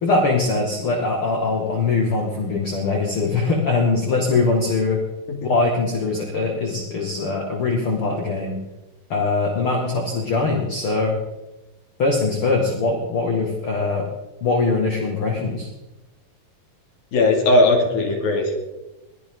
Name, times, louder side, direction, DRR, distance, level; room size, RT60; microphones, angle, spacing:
voice 1, 0.0-5.0 5.4-8.6 9.1-11.1 12.0-14.1 14.4-15.7, left 3 dB, 40° left, 0 dB, 2.6 m, -22 dB
voice 2, 17.1-18.5, left 2 dB, 80° left, 2 dB, 4.4 m, -18 dB
23.0 x 16.0 x 3.9 m, 1.0 s
omnidirectional pair, 4.1 m